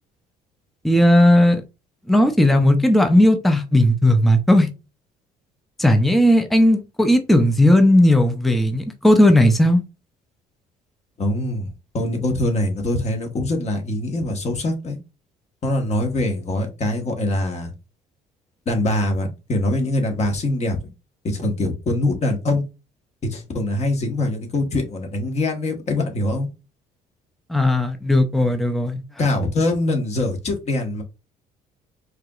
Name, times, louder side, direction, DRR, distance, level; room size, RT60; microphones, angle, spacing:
voice 1, 0.8-1.6 2.1-4.7 5.8-9.8 27.5-29.0, left 1 dB, ahead, 0.6 m, -16 dB
voice 2, 11.2-11.7 11.9-15.0 15.6-17.7 18.7-20.8 21.2-22.6 23.2-26.5 29.2-31.0, left 1 dB, 40° left, 1.3 m, -23 dB
4.7 x 3.0 x 2.4 m
cardioid pair, 110°, 17 cm